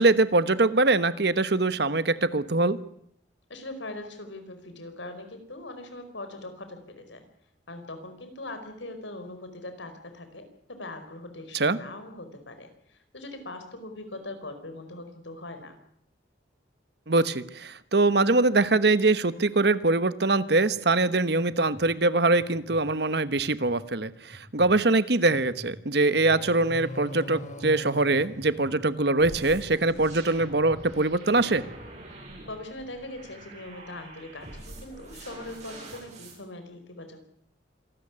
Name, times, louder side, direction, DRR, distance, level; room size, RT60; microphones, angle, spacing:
voice 1, 0.0-2.8 11.5-11.8 17.1-31.6, right 2 dB, 60° right, 14 dB, 1.1 m, -23 dB
voice 2, 3.5-7.2 7.7-15.8 32.5-37.2, left 2 dB, 80° left, 8 dB, 4.8 m, -41 dB
sound 1, 20.7-20.8 21.4-21.9 22.4-22.8 23.3-23.8 24.3-24.7 25.3-25.7 26.3-26.7 27.3-27.7 28.4-28.7 29.4-29.7 30.4-30.8 31.3-31.8, equal, 10° right, 7.4 m, -47 dB
sound 2, 26.1-29.4, left 1 dB, 40° left, 2.2 m, -41 dB
sound 3, 29.2-36.4, right 2 dB, 40° right, 8.0 m, -45 dB
26.5 x 13.5 x 9.9 m, 0.71 s
head